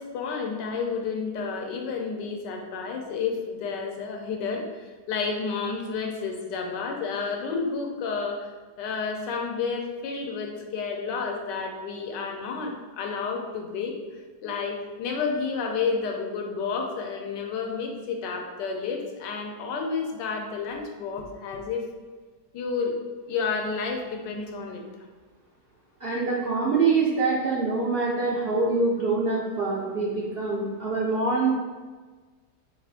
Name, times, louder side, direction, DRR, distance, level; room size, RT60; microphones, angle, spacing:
voice 1, 0.0-8.5 8.8-21.8 22.5-23.0 23.3-24.8, left 5 dB, 90° left, 2 dB, 1.3 m, -31 dB
voice 2, 26.0-31.5, right 3 dB, 85° right, -4 dB, 0.5 m, -25 dB
4.6 x 2.4 x 3.5 m, 1.4 s
omnidirectional pair, 1.8 m